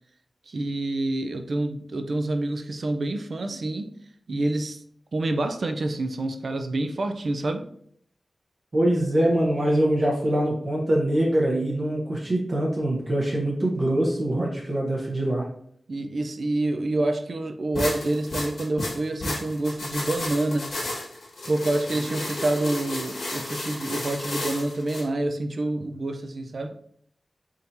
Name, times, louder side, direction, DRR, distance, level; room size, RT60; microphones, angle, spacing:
voice 1, 0.5-3.9 4.3-4.8 5.1-7.7 15.9-20.7 21.5-26.8, right 2 dB, 55° right, 7 dB, 0.4 m, -27 dB
voice 2, 8.7-15.5, right 1 dB, 40° right, -3 dB, 0.8 m, -23 dB
sound 1, 17.7-25.0, left 1 dB, 80° left, 1.4 m, -33 dB
4.3 x 3.7 x 2.6 m, 0.66 s
wide cardioid pair, 125°, 0 cm